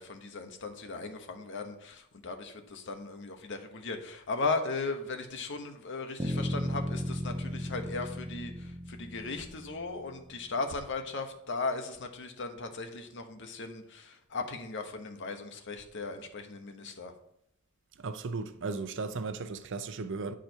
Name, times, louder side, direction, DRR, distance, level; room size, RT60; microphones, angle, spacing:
voice 1, 0.0-17.1, left 3 dB, 60° left, 1.0 m, -37 dB
sound 1, 6.2-10.2, equal, 15° right, 0.7 m, -36 dB
voice 2, 18.0-20.3, right 4 dB, 60° right, 0.6 m, -36 dB
9.2 x 5.0 x 4.5 m
head